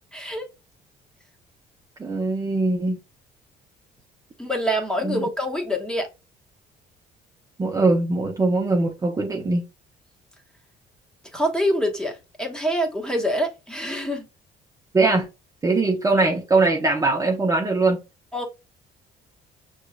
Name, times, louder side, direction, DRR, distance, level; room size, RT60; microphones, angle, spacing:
voice 1, 0.1-0.5 4.4-6.1 11.3-14.2 18.3-18.5, equal, 5° left, 1.3 m, -25 dB
voice 2, 2.0-3.0 5.0-5.2 7.6-9.6 14.9-15.3 15.6-18.0, right 3 dB, 20° right, 0.8 m, -21 dB
6.3 x 3.1 x 2.3 m
cardioid pair, 110°, 17 cm